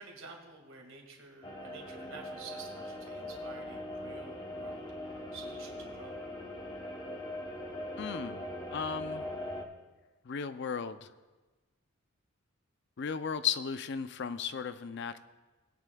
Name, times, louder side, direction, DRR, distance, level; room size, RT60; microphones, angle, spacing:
voice 1, 0.0-6.2, right 4 dB, 70° right, 1 dB, 2.0 m, -51 dB
sound 1, 1.4-9.6, left 1 dB, 20° left, 0.9 m, -41 dB
voice 2, 8.0-9.3 10.2-11.1 13.0-15.2, left 6 dB, 55° left, 12 dB, 0.5 m, -35 dB
19.0 x 9.7 x 2.3 m, 1.2 s
head